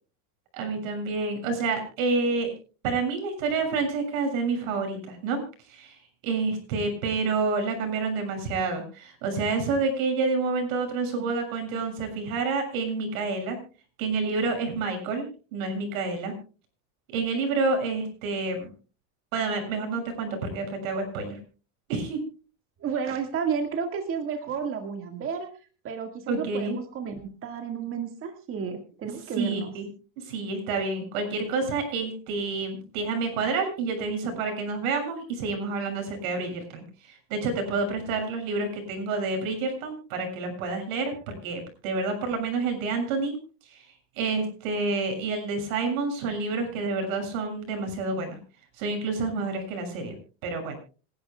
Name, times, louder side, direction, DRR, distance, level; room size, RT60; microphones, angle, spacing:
voice 1, 0.5-2.5 2.8-5.4 5.7-13.6 14.0-16.3 17.1-18.7 19.3-21.4 21.9-22.2 26.3-26.8 29.4-29.9 30.3-36.8 37.3-43.4 43.7-43.8 44.2-48.4 48.8-50.2 50.4-50.8, right 4 dB, 80° right, 5 dB, 6.8 m, -28 dB
voice 2, 22.8-25.5 25.8-29.7, right 6 dB, 30° right, 5 dB, 1.9 m, -32 dB
26.5 x 11.0 x 2.3 m, 0.35 s
supercardioid pair, 140°, 40 cm